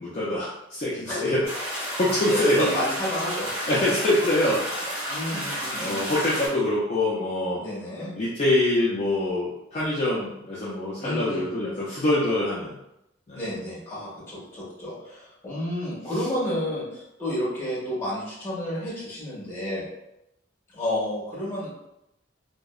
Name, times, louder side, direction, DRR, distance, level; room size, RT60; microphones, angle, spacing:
voice 1, 0.0-1.5 1.8-2.7 3.7-4.6 4.9-5.0 5.3-7.6 8.1-12.8 13.3-13.4, left 1 dB, 35° left, -7 dB, 0.4 m, -25 dB
sound 1, 1.4-6.5, equal, 20° right, 1.2 m, -31 dB
voice 2, 2.3-3.7 5.1-6.0 7.5-8.1 11.0-11.5 13.3-19.8 20.7-21.7, left 1 dB, 15° left, -7 dB, 1.1 m, -31 dB
2.7 x 2.1 x 2.3 m, 0.86 s
head